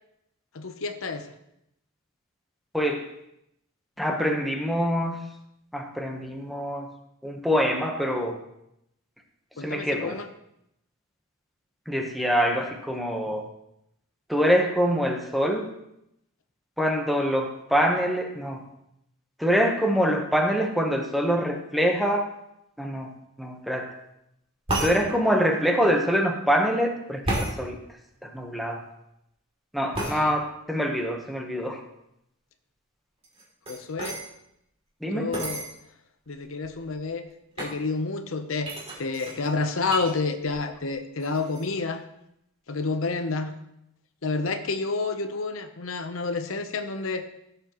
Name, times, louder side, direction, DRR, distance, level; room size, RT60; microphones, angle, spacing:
voice 1, 0.5-1.3 9.6-10.3 30.0-30.4 33.7-34.2 35.1-35.6 36.3-37.3 37.6-38.7 39.0-42.0 42.7-43.5 44.2-47.3, left 3 dB, 75° left, 8 dB, 0.8 m, -29 dB
voice 2, 2.7-3.1 4.0-5.2 5.7-6.9 7.2-8.3 9.6-10.2 11.9-13.4 14.3-15.7 16.8-18.6 19.4-22.3 22.8-23.1 23.4-23.9 24.8-27.8 28.2-28.8 29.7-31.8 35.0-35.3, equal, ahead, 2 dB, 1.0 m, -25 dB
sound 1, 24.7-25.0 27.2-27.5 29.9-30.2 33.2-34.2 35.3-35.7 36.4-36.5 36.6-37.0 37.6-37.8 38.6-40.1 40.5-40.9 41.2-41.6, right 1 dB, 30° right, 2.7 m, -31 dB
16.5 x 7.0 x 3.0 m, 0.79 s
head